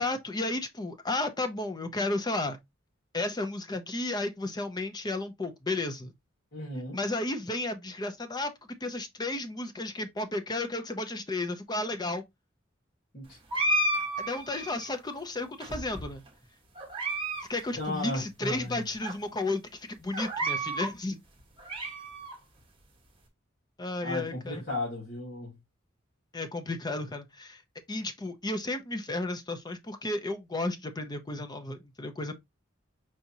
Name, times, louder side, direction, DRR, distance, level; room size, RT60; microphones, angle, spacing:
voice 1, 0.0-2.6 3.1-6.1 6.9-8.5 8.8-12.2 14.2-16.2 17.5-21.2 23.8-24.6 26.3-27.6 27.9-32.3, left 2 dB, 20° left, 0.5 m, -33 dB
voice 2, 6.5-7.0 13.1-13.4 17.8-18.8 24.0-25.6, left 1 dB, 55° left, 1.9 m, -35 dB
sound 1, 13.5-14.9 15.6-16.3 16.8-17.5 17.7-17.8 18.5-18.6 19.0-19.1 20.1-20.9 21.4-22.4, right 1 dB, 25° right, 1.1 m, -31 dB
4.8 x 2.8 x 2.7 m
head